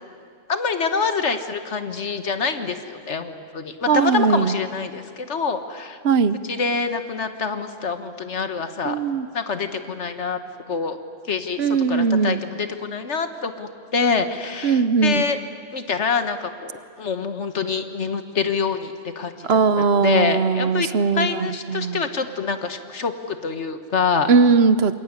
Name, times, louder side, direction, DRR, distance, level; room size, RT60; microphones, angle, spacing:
voice 1, 0.5-6.0 6.5-9.0 9.3-10.4 10.7-11.0 11.3-15.4 15.7-16.7 17.0-20.9 21.1-24.3, left 5 dB, 90° left, 9 dB, 1.8 m, -26 dB
voice 2, 3.9-4.5 6.0-6.4 8.8-9.3 11.6-12.4 14.6-15.2 19.4-22.0 24.3-25.0, right 5 dB, 65° right, 14 dB, 1.2 m, -19 dB
27.0 x 21.0 x 9.7 m, 2.2 s
omnidirectional pair, 1.1 m